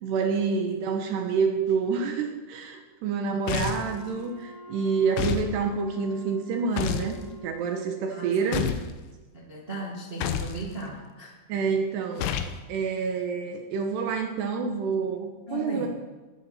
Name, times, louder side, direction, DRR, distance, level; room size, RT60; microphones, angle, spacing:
voice 1, 0.0-7.2 7.4-8.7 11.5-12.3 12.7-15.9, right 5 dB, 80° right, 4 dB, 3.3 m, -28 dB
voice 2, 3.2-3.7 8.1-8.7 9.3-11.3 15.5-15.9, right 1 dB, 25° right, -3 dB, 1.4 m, -37 dB
sound 1, 3.5-4.0 5.2-5.5 6.8-7.1 8.5-8.9 10.2-10.6 12.2-12.6, left 9 dB, 85° left, 3.0 m, -28 dB
Wind instrument woodwind instrument, 3.7-8.4, left 2 dB, 65° left, 4.2 m, -47 dB
19.0 x 11.5 x 4.4 m, 1.2 s
omnidirectional pair, 4.9 m